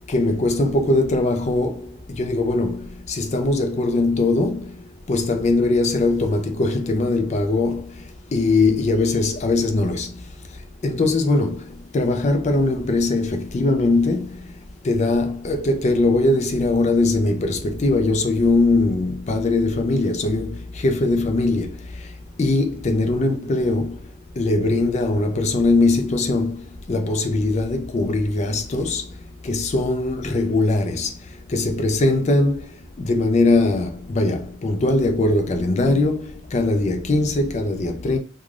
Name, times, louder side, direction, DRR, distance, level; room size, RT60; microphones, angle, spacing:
voice 1, 0.1-38.2, left 2 dB, 35° left, 0.4 m, -21 dB
3.2 x 2.3 x 2.4 m
head